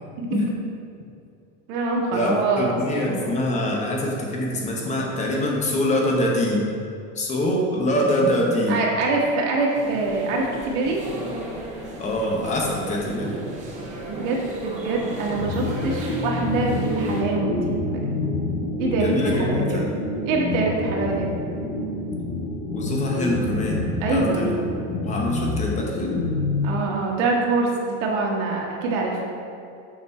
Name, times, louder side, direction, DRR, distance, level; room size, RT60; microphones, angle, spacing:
voice 1, 0.2-0.5 1.7-3.3 8.7-11.0 13.9-17.6 17.9-18.1 18.8-19.8 20.2-21.3 24.0-24.6 26.6-29.2, right 3 dB, 85° right, -2 dB, 1.5 m, -25 dB
voice 2, 2.1-6.7 7.1-8.8 12.0-13.3 18.9-19.9 22.7-24.6 25.0-26.2, left 1 dB, 20° left, -2 dB, 0.8 m, -24 dB
sound 1, 9.7-17.2, right 1 dB, 20° right, 0.7 m, -36 dB
sound 2, 15.4-27.2, left 2 dB, 45° left, 1.0 m, -27 dB
7.1 x 4.1 x 4.4 m, 2.5 s
cardioid pair, 165°, 37 cm